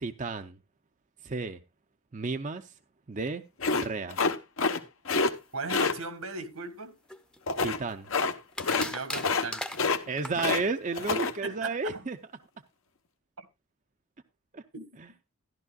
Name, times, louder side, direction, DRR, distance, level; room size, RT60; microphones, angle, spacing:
voice 1, 0.0-0.6 1.2-1.6 2.1-2.7 3.1-3.4 3.7-4.2 7.6-8.1 10.1-12.2 14.5-14.6, right 4 dB, 35° right, 0.5 m, -32 dB
sound 1, 3.6-4.8 5.0-5.3 5.7-5.9 7.5-7.8 8.1-8.3 8.6-8.9 9.1-9.5 9.7-10.6 10.9-11.3, left 4 dB, 65° left, 1.0 m, -27 dB
voice 2, 5.5-7.0 8.7-9.6 11.4-12.1 13.4-13.5 14.7-14.9, right 3 dB, 85° right, 1.9 m, -37 dB
sound 2, 7.1-7.9 8.5-10.5, left 1 dB, 5° left, 0.7 m, -38 dB
14.0 x 11.5 x 2.3 m
head